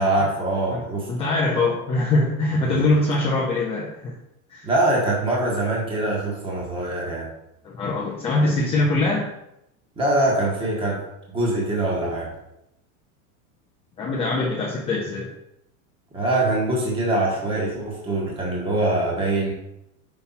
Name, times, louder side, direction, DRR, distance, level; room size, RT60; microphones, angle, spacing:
voice 1, 0.0-1.1 2.5-2.9 4.6-7.3 10.0-11.0 11.3-12.3 16.1-19.5, right 2 dB, 10° right, -4 dB, 1.5 m, -23 dB
voice 2, 1.1-4.2 4.5-4.6 7.6-9.3 14.0-15.3, left 2 dB, 15° left, -4 dB, 0.6 m, -23 dB
5.8 x 5.6 x 4.2 m, 0.83 s
supercardioid pair, 160°, 44 cm